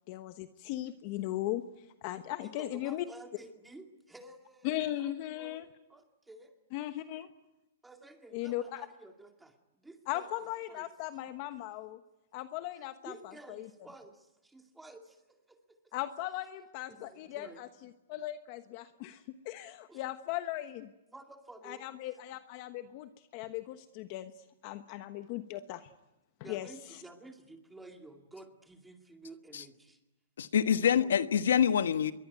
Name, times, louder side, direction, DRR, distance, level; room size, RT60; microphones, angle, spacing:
voice 1, 0.1-1.6 2.0-3.0 4.6-5.6 6.7-7.3 8.3-8.8 10.1-12.0 12.3-13.7 15.9-20.9 21.6-24.3 24.6-25.9 26.4-26.7, left 14 dB, 35° left, 1.1 m, -38 dB
voice 2, 2.4-6.6 7.8-10.3 10.7-11.2 12.8-15.9 16.9-17.6 19.9-20.0 21.1-21.9 26.4-30.0 30.8-31.1, right 2 dB, 5° right, 2.3 m, -52 dB
voice 3, 30.4-32.1, left 8 dB, 85° left, 1.2 m, -26 dB
26.5 x 22.5 x 9.4 m
hypercardioid pair, 160°, 0 cm